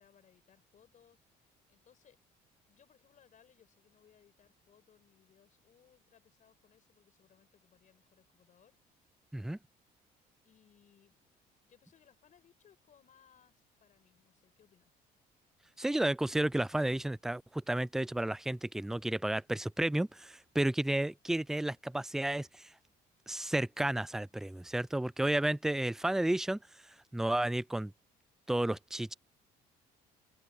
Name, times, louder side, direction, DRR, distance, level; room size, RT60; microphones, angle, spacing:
voice 1, 0.0-2.2 2.6-8.8 10.4-11.3 11.6-14.9, left 8 dB, 50° left, 5.4 m, -66 dB
voice 2, 15.8-22.7 23.3-26.6 27.1-27.9 28.5-29.1, right 1 dB, 5° right, 0.3 m, -32 dB
cardioid pair, 110°, 17 cm